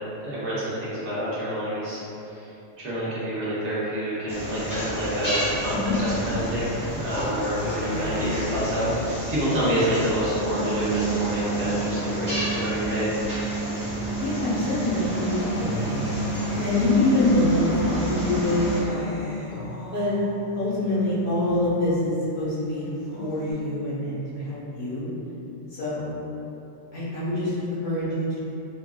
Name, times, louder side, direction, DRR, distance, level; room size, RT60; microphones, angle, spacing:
voice 1, 0.2-2.0 2.3-2.4 2.8-13.1, equal, 70° right, -10 dB, 1.3 m, -28 dB
sound 1, 4.3-18.8, right 2 dB, 10° left, 0.9 m, -29 dB
Acoustic guitar, 7.5-14.2 14.6-22.2 22.6-23.5, left 2 dB, 80° left, 1.3 m, -37 dB
voice 2, 7.9-8.2 14.2-16.1 16.6-19.3 19.9-20.1 20.6-22.9 23.2-25.1 25.7-26.1 26.9-28.5, left 2 dB, 60° left, -10 dB, 1.3 m, -25 dB
5.0 x 2.3 x 2.3 m, 2.8 s
omnidirectional pair, 1.2 m